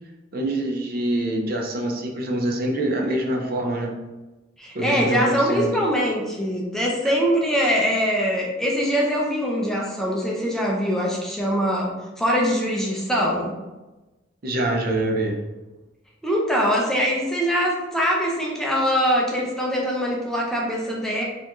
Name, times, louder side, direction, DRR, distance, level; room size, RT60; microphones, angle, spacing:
voice 1, 0.3-3.9 4.7-5.7 14.4-15.4, right 1 dB, 50° right, 1 dB, 0.5 m, -25 dB
voice 2, 4.6-13.6 16.2-21.2, equal, 5° left, -3 dB, 0.5 m, -23 dB
4.1 x 2.5 x 3.0 m, 1.1 s
head